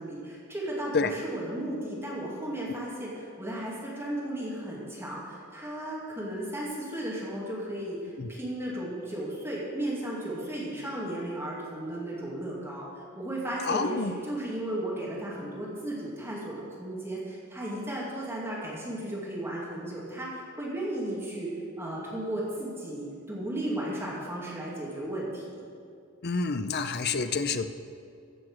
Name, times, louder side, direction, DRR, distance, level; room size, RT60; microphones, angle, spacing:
voice 1, 0.0-12.9 13.2-21.5 21.8-25.4, right 1 dB, 10° right, -6 dB, 2.4 m, -35 dB
voice 2, 13.7-14.1 26.2-27.7, left 4 dB, 50° left, 9 dB, 0.6 m, -28 dB
15.0 x 6.4 x 6.4 m, 2.4 s
head